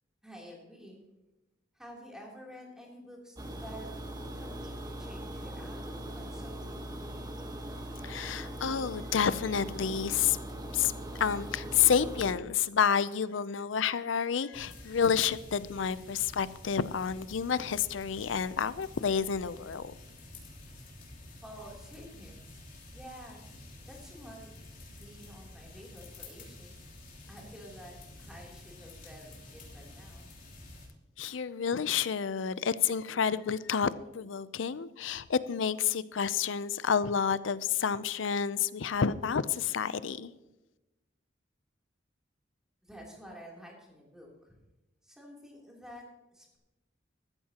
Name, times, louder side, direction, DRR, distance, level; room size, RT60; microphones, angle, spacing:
voice 1, 0.2-1.0 1.7-3.9 4.3-6.9 21.4-22.6 22.9-23.4 23.9-24.5 25.0-26.9 27.3-30.3 42.8-44.6 45.0-46.6, equal, 5° right, 3.2 m, -50 dB
sound 1, 3.4-12.3, right 1 dB, 20° right, 1.3 m, -40 dB
voice 2, 8.0-10.4 10.7-10.9 11.2-19.9 31.2-40.3, left 7 dB, 90° left, 0.5 m, -29 dB
sound 2, 14.5-30.9, left 2 dB, 45° left, 3.5 m, -50 dB
14.5 x 13.5 x 2.9 m
head